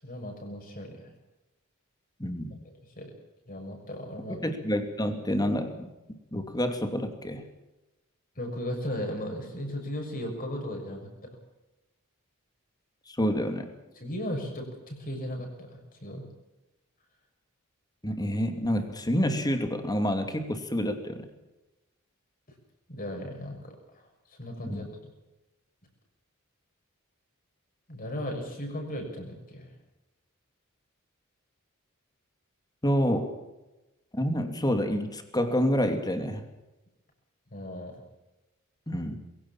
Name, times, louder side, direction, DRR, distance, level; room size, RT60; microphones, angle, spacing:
voice 1, 0.0-1.1 3.0-3.1 3.5-4.4 8.3-11.4 14.0-16.2 22.9-24.9 27.9-29.7 37.5-38.0, equal, 40° left, 2 dB, 6.5 m, -36 dB
voice 2, 2.2-2.6 4.4-7.4 13.1-13.7 18.0-21.2 24.6-24.9 32.8-33.3 34.1-36.4 38.9-39.2, equal, 20° left, 6 dB, 2.8 m, -28 dB
22.5 x 17.0 x 7.4 m, 1.0 s
head